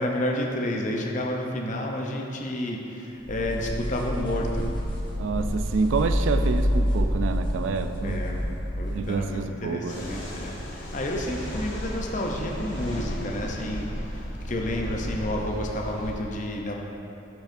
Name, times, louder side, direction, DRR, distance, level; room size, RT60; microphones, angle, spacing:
voice 1, 0.0-4.7 8.0-8.5 8.8-14.2 14.4-16.7, left 1 dB, 40° left, 0 dB, 0.6 m, -30 dB
sound 1, 3.2-9.2, equal, 25° left, 0.9 m, -27 dB
voice 2, 5.2-8.2 8.9-10.0, right 4 dB, 75° right, 8 dB, 0.3 m, -28 dB
sound 2, 9.9-16.1, equal, 90° left, 1.6 m, -34 dB
12.0 x 4.6 x 2.6 m, 2.9 s
head